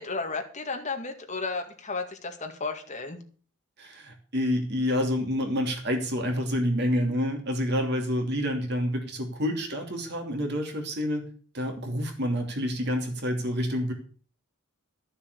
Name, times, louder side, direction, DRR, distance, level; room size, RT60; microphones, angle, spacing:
voice 1, 0.0-3.2, left 3 dB, 35° left, 4 dB, 2.0 m, -33 dB
voice 2, 3.8-11.2 11.5-13.9, equal, 50° right, 3 dB, 2.9 m, -28 dB
13.0 x 7.2 x 6.8 m, 0.41 s
head